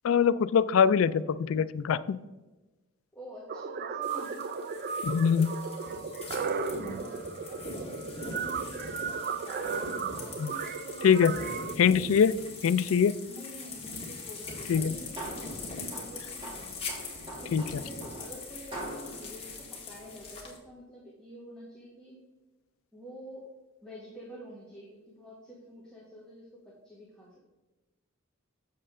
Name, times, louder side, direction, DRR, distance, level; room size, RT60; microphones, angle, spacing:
voice 1, 0.0-2.2 5.0-5.5 10.4-10.5 11.0-11.3 11.8-12.4 12.6-13.1 14.7-14.9 17.5-17.6, left 7 dB, 70° left, 14 dB, 0.3 m, -23 dB
voice 2, 3.1-5.0 5.4-5.5 6.3-11.1 11.6-11.8 13.3-16.9 17.4-22.2 22.9-23.5 23.8-27.4, equal, 5° left, -6 dB, 1.5 m, -48 dB
sound 1, 3.5-11.7, right 5 dB, 45° right, 0.4 m, -35 dB
sound 2, 4.0-20.6, left 3 dB, 30° left, 1.8 m, -42 dB
sound 3, 14.7-20.6, right 1 dB, 25° right, 2.5 m, -44 dB
7.5 x 6.7 x 3.7 m, 1.1 s
head